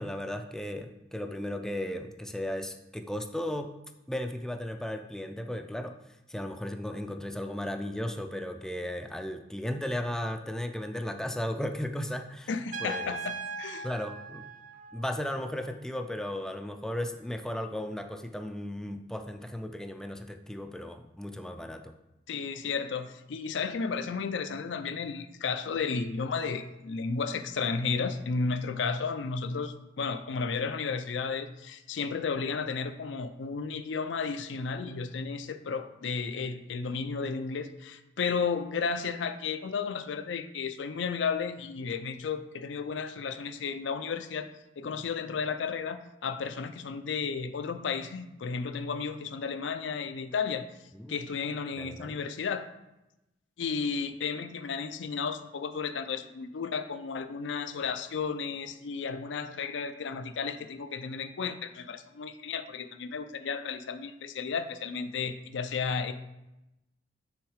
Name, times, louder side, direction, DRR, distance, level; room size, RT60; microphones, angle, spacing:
voice 1, 0.0-3.7 4.1-6.0 6.3-12.5 12.8-13.2 13.8-14.5 14.9-21.9 50.9-51.2 51.8-52.2, left 1 dB, 5° left, 6 dB, 0.3 m, -35 dB
voice 2, 12.5-13.9 22.3-44.5 44.8-50.6 51.1-52.7 53.6-66.1, left 5 dB, 80° left, 10 dB, 0.4 m, -33 dB
Trumpet, 12.7-15.4, right 3 dB, 45° right, 0.6 m, -39 dB
6.2 x 3.6 x 4.8 m, 0.93 s
head